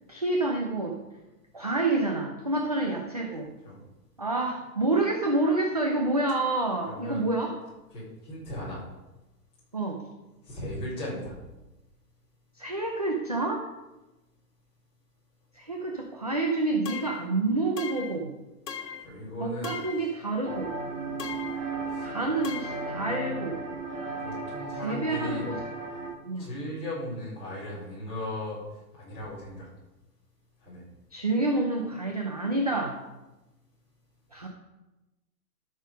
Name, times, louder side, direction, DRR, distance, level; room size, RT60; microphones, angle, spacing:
voice 1, 0.1-1.0 1.5-3.5 4.2-7.6 9.7-10.0 12.6-13.7 15.5-18.3 19.4-20.7 22.0-23.7 24.8-25.6 26.2-26.5 31.1-33.0 34.3-34.5, right 2 dB, 25° right, 1 dB, 0.5 m, -28 dB
voice 2, 6.9-7.3 7.9-8.8 10.4-11.3 19.0-19.7 21.9-22.1 24.2-25.5 26.4-28.6 28.9-29.7 30.6-30.8, left 1 dB, 10° left, -9 dB, 3.9 m, -37 dB
sound 1, 16.9-17.3 17.8-18.2 18.7-19.1 19.6-20.1 21.2-21.6 22.4-22.9, left 7 dB, 90° left, 1.6 m, -38 dB
sound 2, 20.4-26.1, right 3 dB, 50° right, 2.9 m, -35 dB
13.0 x 6.3 x 5.2 m, 1.0 s
hypercardioid pair, 180°, 47 cm